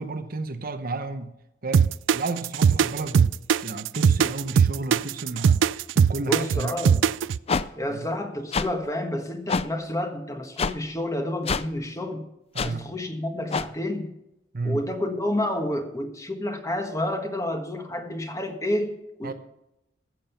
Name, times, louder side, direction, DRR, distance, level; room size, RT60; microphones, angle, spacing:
voice 1, 0.0-1.4 1.6-3.3 3.6-6.8 7.9-8.1 12.5-12.9 14.5-14.8 19.2-19.3, right 3 dB, 50° right, 0.8 m, -32 dB
sound 1, 1.7-7.4, right 7 dB, 85° right, 0.3 m, -19 dB
voice 2, 6.3-7.1 7.8-12.2 12.6-14.1 14.6-19.3, left 1 dB, 15° left, 1.3 m, -29 dB
sound 2, 7.5-7.6 8.5-8.7 9.5-9.6 10.6-10.7 11.5-11.6 12.6-12.7 13.5-13.7, left 4 dB, 35° left, 0.4 m, -25 dB
14.0 x 7.6 x 5.6 m
head